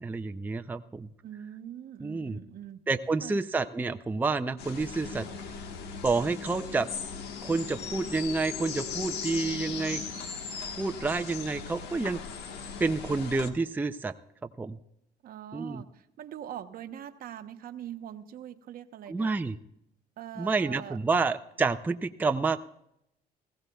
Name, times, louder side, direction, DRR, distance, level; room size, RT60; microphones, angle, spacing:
voice 1, 0.0-1.1 2.0-2.4 2.9-5.3 6.0-6.9 7.4-10.0 10.8-12.2 12.8-14.1 14.6-14.8 15.5-15.8 19.1-19.6 20.4-22.7, right 3 dB, 10° right, 8 dB, 0.5 m, -29 dB
voice 2, 1.2-2.8 3.2-3.4 15.2-19.4 20.2-21.0, right 10 dB, 60° right, 9 dB, 0.9 m, -42 dB
sound 1, 4.6-13.5, left 6 dB, 80° left, 1.3 m, -38 dB
20.0 x 15.5 x 2.3 m, 0.79 s
cardioid pair, 110°, 17 cm